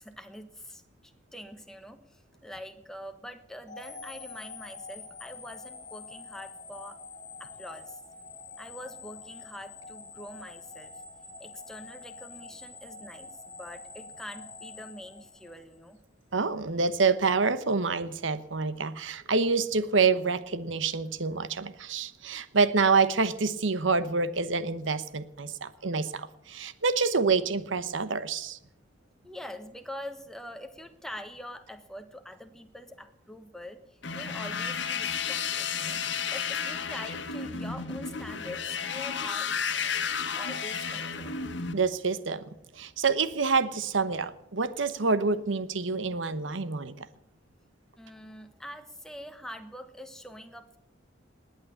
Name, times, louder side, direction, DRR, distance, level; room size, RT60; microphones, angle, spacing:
voice 1, 0.0-7.0 7.4-8.0 8.6-11.0 11.4-16.0 29.2-36.0 36.3-39.6 40.3-41.4 48.0-50.8, left 1 dB, 5° left, 7 dB, 1.3 m, -44 dB
sound 1, 3.7-15.8, left 4 dB, 20° left, 2.0 m, -46 dB
voice 2, 16.3-28.6 41.7-42.4 42.8-47.1, right 4 dB, 85° right, 14 dB, 1.0 m, -27 dB
sound 2, 34.0-41.7, left 6 dB, 70° left, 1.6 m, -32 dB
19.5 x 8.7 x 8.3 m, 0.81 s
head